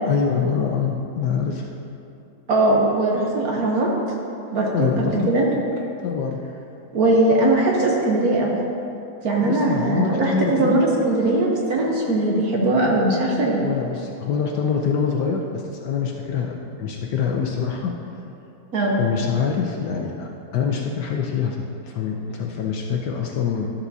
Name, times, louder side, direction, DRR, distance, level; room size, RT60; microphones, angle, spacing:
voice 1, 0.0-1.7 4.7-5.3 6.0-6.4 9.4-10.8 13.6-16.5 16.8-17.9 19.0-23.7, left 6 dB, 70° left, 1 dB, 1.1 m, -25 dB
voice 2, 2.5-3.9 4.5-5.4 6.9-8.5 9.2-13.6 18.7-19.0, right 2 dB, 55° right, -2 dB, 1.2 m, -20 dB
12.0 x 7.1 x 2.7 m, 2.8 s
omnidirectional pair, 2.2 m